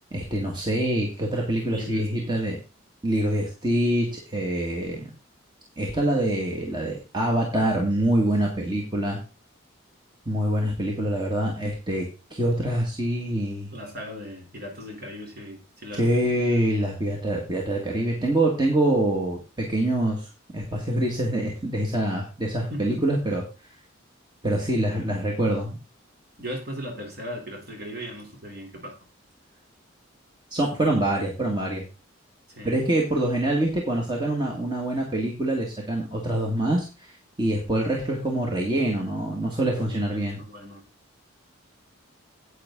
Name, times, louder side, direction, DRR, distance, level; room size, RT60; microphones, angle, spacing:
voice 1, 0.1-2.6 3.0-5.1 5.8-9.2 10.3-13.7 16.0-20.3 20.5-23.4 24.4-25.8 30.5-31.8 32.6-40.4, right 1 dB, 20° right, -1 dB, 1.8 m, -25 dB
voice 2, 1.7-2.3 13.7-16.3 22.7-23.0 26.4-29.0 32.5-32.8 39.9-40.8, equal, 45° right, 2 dB, 3.5 m, -38 dB
10.0 x 8.4 x 3.8 m, 0.31 s
head